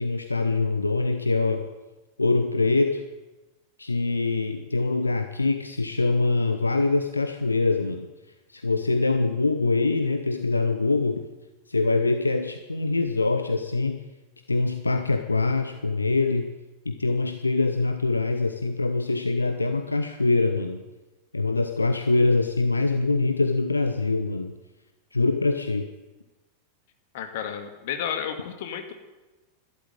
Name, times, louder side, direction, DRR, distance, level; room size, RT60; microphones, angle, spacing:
voice 1, 0.0-1.7 2.2-3.0 3.8-8.1 8.5-11.2 11.7-14.0 14.5-16.5 16.8-20.8 21.3-24.5 25.1-25.9, left 3 dB, 80° left, 7 dB, 1.0 m, -24 dB
voice 2, 27.1-28.9, left 8 dB, 50° left, 6 dB, 2.2 m, -32 dB
13.0 x 12.0 x 9.1 m, 1.1 s
figure-of-eight pair, 90°, 0 cm